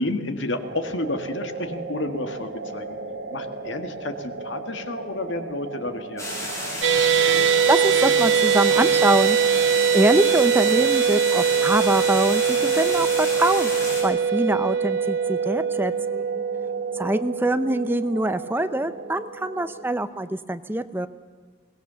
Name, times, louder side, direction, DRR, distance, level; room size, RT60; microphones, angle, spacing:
voice 1, 0.0-2.9 3.3-6.9, left 2 dB, 80° left, 7 dB, 1.8 m, -31 dB
sound 1, 0.6-19.8, right 3 dB, 90° right, 2.9 m, -37 dB
sound 2, 6.2-14.0, left 1 dB, 15° left, 6.1 m, -31 dB
sound 3, 6.8-19.2, right 7 dB, 75° right, 1.4 m, -22 dB
voice 2, 7.7-13.7 14.0-16.2 16.9-21.1, right 1 dB, 10° right, 11 dB, 0.6 m, -24 dB
23.0 x 19.0 x 7.0 m, 1.5 s
head